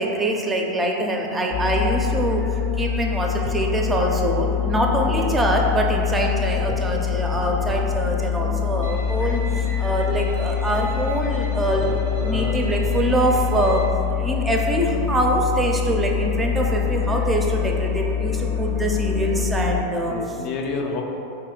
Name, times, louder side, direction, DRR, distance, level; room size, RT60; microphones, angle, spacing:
voice 1, 0.0-2.4 2.8-3.3 3.5-9.4 9.8-13.8 14.2-20.1, right 1 dB, 15° right, 1 dB, 0.4 m, -23 dB
sound 1, 1.5-19.8, left 8 dB, 85° left, 0.7 m, -24 dB
voice 2, 5.1-5.4 9.4-9.7 12.2-12.6 20.1-21.0, left 4 dB, 45° left, 1 dB, 0.4 m, -30 dB
Bowed string instrument, 8.8-13.9, right 1 dB, 80° right, 0.5 m, -41 dB
2.9 x 2.7 x 3.8 m, 2.7 s
hypercardioid pair, 95°, 0 cm